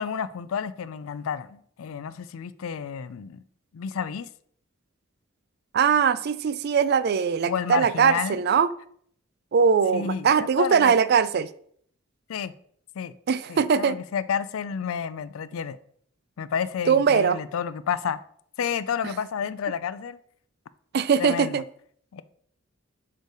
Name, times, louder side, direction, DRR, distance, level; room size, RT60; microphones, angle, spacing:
voice 1, 0.0-3.4 3.7-4.3 7.5-8.4 9.9-10.9 12.3-12.5 13.0-13.1 13.5-15.8 16.4-18.2 18.6-20.2 21.2-21.6 22.1-22.2, left 7 dB, 85° left, 0.4 m, -30 dB
voice 2, 5.7-8.7 9.5-11.5 13.3-14.0 16.9-17.4 20.9-21.6, right 6 dB, 50° right, 0.3 m, -21 dB
6.7 x 3.2 x 4.7 m
head